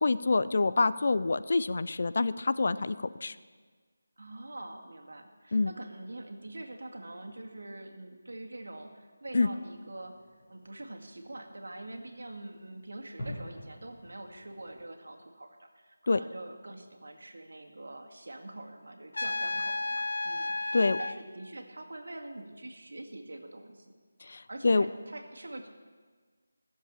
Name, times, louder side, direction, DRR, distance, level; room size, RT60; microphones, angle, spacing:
voice 1, 0.0-3.3 5.5-5.7 9.3-9.5 16.1-16.2 20.7-21.0 24.2-24.9, left 3 dB, 40° left, 14 dB, 0.4 m, -26 dB
voice 2, 4.2-10.2 10.5-23.9 24.5-25.7, right 2 dB, 75° right, 4 dB, 2.0 m, -45 dB
Fireworks, 9.5-14.8, left 1 dB, 25° left, 3.3 m, -48 dB
Trumpet, 19.1-21.2, left 2 dB, 70° left, 0.8 m, -32 dB
15.0 x 7.4 x 8.4 m, 1.5 s
figure-of-eight pair, 180°, 0 cm